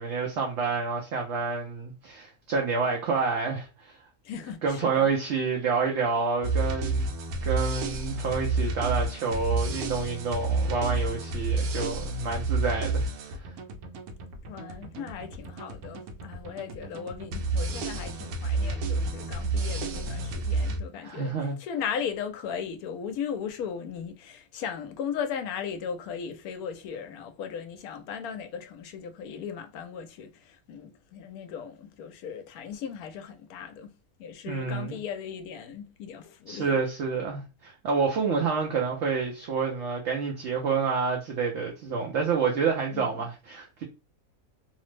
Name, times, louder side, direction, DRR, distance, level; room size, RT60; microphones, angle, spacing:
voice 1, 0.0-4.0 4.6-7.1 7.4-13.0 13.3-13.5 21.0-21.6 34.5-35.0 36.5-43.8, right 5 dB, 65° right, 0.7 m, -28 dB
voice 2, 4.2-5.1 14.5-33.9 34.2-36.8 42.9-43.3, left 7 dB, 80° left, 1.0 m, -37 dB
sound 1, 6.4-20.8, right 3 dB, 85° right, 1.1 m, -30 dB
2.9 x 2.0 x 3.1 m
omnidirectional pair, 1.6 m